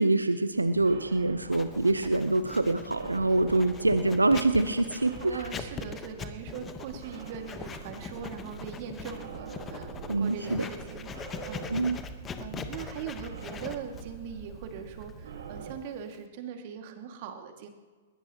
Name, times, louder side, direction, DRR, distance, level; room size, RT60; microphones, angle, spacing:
voice 1, 0.0-5.5 10.1-10.6 11.7-12.0, right 2 dB, 85° right, 11 dB, 0.8 m, -25 dB
sound 1, 0.5-15.7, right 7 dB, 60° right, 2.0 m, -45 dB
Writing, 1.5-16.3, left 6 dB, 20° left, 1.2 m, -42 dB
voice 2, 5.2-11.8 12.4-17.7, right 7 dB, 45° right, 4 dB, 2.2 m, -41 dB
21.0 x 20.5 x 3.0 m, 1.4 s
figure-of-eight pair, 110°, 0 cm